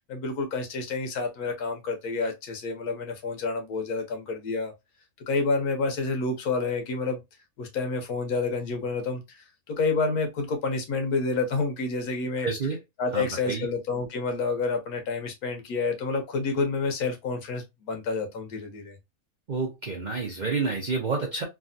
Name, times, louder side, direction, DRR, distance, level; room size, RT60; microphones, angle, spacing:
voice 1, 0.1-4.7 5.3-7.2 7.6-12.5 13.0-19.0, left 3 dB, 85° left, 1.4 m, -29 dB
voice 2, 12.4-12.8 13.1-13.7 19.5-21.4, right 4 dB, 55° right, 0.5 m, -29 dB
3.3 x 2.3 x 2.5 m
omnidirectional pair, 1.5 m